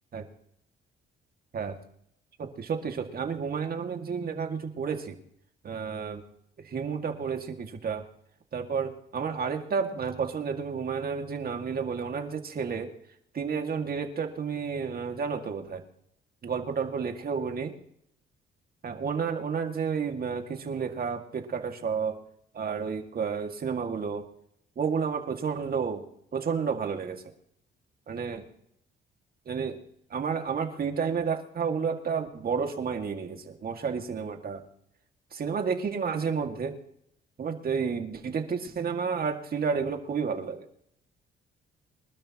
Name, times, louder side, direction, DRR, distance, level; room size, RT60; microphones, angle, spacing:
voice 1, 2.4-5.2 5.6-6.2 6.6-8.0 8.5-12.9 13.3-15.8 16.4-17.7 18.8-22.2 22.5-24.2 24.8-26.0 26.3-27.2 28.1-28.4 29.5-29.8 30.1-34.6 35.3-36.8 37.4-40.7, right 6 dB, 50° right, 5 dB, 2.2 m, -31 dB
25.0 x 12.5 x 3.0 m, 0.71 s
cardioid pair, 90°, 20 cm